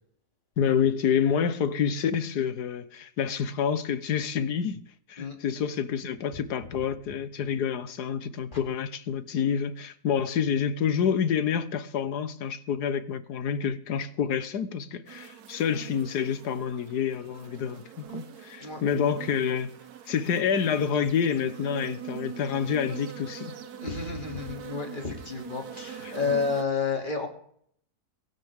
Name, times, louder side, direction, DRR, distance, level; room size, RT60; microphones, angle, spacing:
voice 1, 0.6-4.8 5.1-19.7 20.1-23.5 26.0-26.1, left 7 dB, 80° left, 1.6 m, -28 dB
sound 1, 15.1-26.6, right 9 dB, 70° right, 1.7 m, -43 dB
voice 2, 23.7-27.3, left 5 dB, 30° left, 2.8 m, -30 dB
22.5 x 12.0 x 3.6 m
omnidirectional pair, 1.7 m